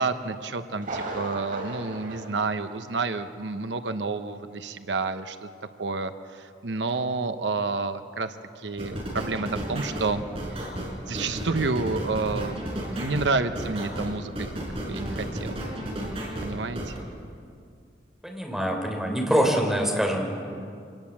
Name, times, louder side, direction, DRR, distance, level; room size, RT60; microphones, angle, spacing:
voice 1, 0.0-5.5 5.8-10.2 10.5-10.7 11.1-12.6 12.9-14.5 14.9-15.6 16.4-16.9, right 3 dB, 80° right, 10 dB, 0.9 m, -29 dB
Thunder, 0.8-3.4 3.6-3.7 4.3-4.4, right 2 dB, 50° right, 3.8 m, -37 dB
sound 1, 8.8-17.0, right 1 dB, 35° right, 4.9 m, -33 dB
voice 2, 18.2-20.3, equal, ahead, 0 dB, 3.7 m, -24 dB
25.5 x 19.5 x 7.4 m, 2.3 s
head